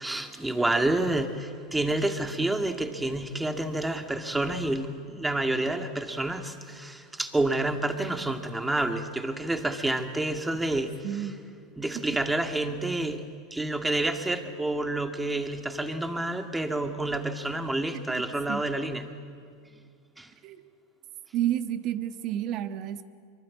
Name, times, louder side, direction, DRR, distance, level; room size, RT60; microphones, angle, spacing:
voice 1, 0.0-11.3 11.8-13.2 13.5-19.1 20.2-20.3, right 2 dB, 10° right, 6 dB, 2.2 m, -29 dB
voice 2, 11.0-11.4 11.9-12.2 17.9-18.2 18.5-18.6 20.4-20.6 21.3-23.0, right 11 dB, 50° right, 10 dB, 1.4 m, -31 dB
24.5 x 23.5 x 8.6 m, 2.2 s
hypercardioid pair, 105°, 0 cm